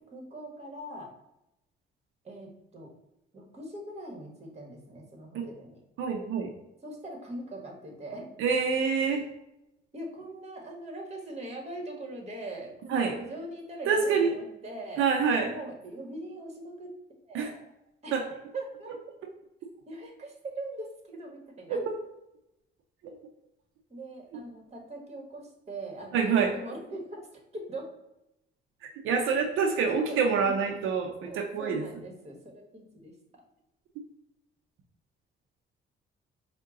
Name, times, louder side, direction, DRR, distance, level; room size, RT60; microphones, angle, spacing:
voice 1, 0.1-1.1 2.2-2.9 3.3-5.8 6.8-8.3 9.9-15.0 15.5-17.0 17.3-17.6 18.0-18.3 18.5-18.9 19.9-21.8 23.9-27.2 27.5-27.9 30.1-30.6 31.3-33.1, right 1 dB, 35° right, 2 dB, 1.2 m, -41 dB
voice 2, 6.0-6.5 8.4-9.2 12.9-13.2 13.9-14.3 15.0-15.5 17.3-17.5 18.1-18.2 21.7-21.8 23.0-23.2 26.1-26.5 29.0-31.8, right 5 dB, 85° right, 2 dB, 0.6 m, -26 dB
4.5 x 2.2 x 3.6 m, 0.86 s
cardioid pair, 90°, 20 cm